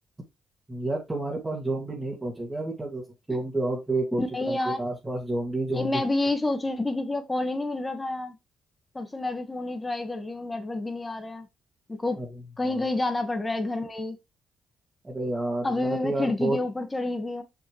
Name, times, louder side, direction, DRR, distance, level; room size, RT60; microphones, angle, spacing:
voice 1, 0.7-4.2 4.5-5.9 12.2-12.3 12.7-12.8 15.0-16.6, right 2 dB, 15° right, 2.3 m, -30 dB
voice 2, 4.2-4.9 5.7-8.4 8.9-11.5 11.9-12.2 12.6-14.2 15.6-17.4, left 2 dB, 20° left, 1.7 m, -29 dB
6.1 x 5.8 x 3.3 m
cardioid pair, 90°, 0 cm